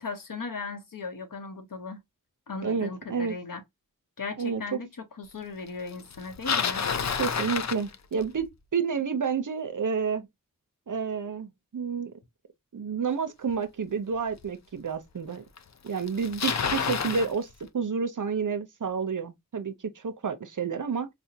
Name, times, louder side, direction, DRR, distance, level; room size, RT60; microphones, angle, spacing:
voice 1, 0.0-2.0 2.5-3.6 4.2-6.8, left 4 dB, 70° left, 0.9 m, -37 dB
voice 2, 2.6-3.3 4.4-4.6 7.2-10.3 10.9-12.1 12.7-15.4 15.8-21.1, right 6 dB, 65° right, 0.7 m, -30 dB
Bicycle, 6.1-8.5 13.5-13.6 14.4-14.5 15.6-15.7 15.9-17.3, left 6 dB, 50° left, 0.5 m, -29 dB
4.1 x 2.2 x 2.7 m
wide cardioid pair, 40°, 34 cm